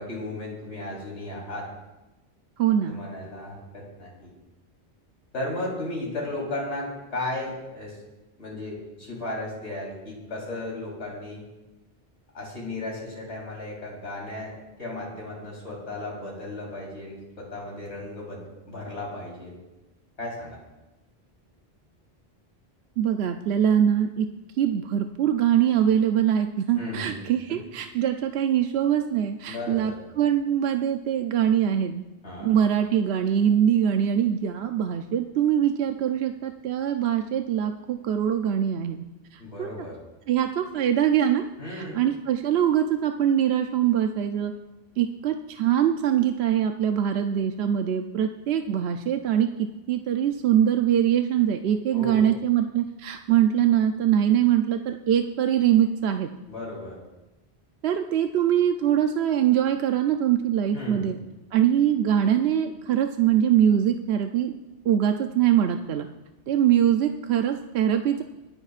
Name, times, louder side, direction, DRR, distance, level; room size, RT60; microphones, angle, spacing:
voice 1, 0.0-1.7 2.8-4.3 5.3-8.0 8.4-11.4 12.3-14.5 14.8-19.6 20.2-20.6 26.7-27.2 27.5-27.6 29.5-30.0 32.2-32.5 39.4-40.0 41.6-42.0 51.9-52.3 56.5-57.0 60.7-61.1, left 2 dB, 90° left, -3 dB, 4.0 m, -35 dB
voice 2, 2.6-3.0 23.0-24.3 24.6-32.0 32.4-39.0 39.3-39.9 40.3-44.5 45.0-56.3 57.8-61.2 61.5-64.5 64.8-66.1 66.5-68.2, right 10 dB, 75° right, 6 dB, 0.9 m, -23 dB
24.5 x 10.0 x 2.5 m, 1.0 s
omnidirectional pair, 1.1 m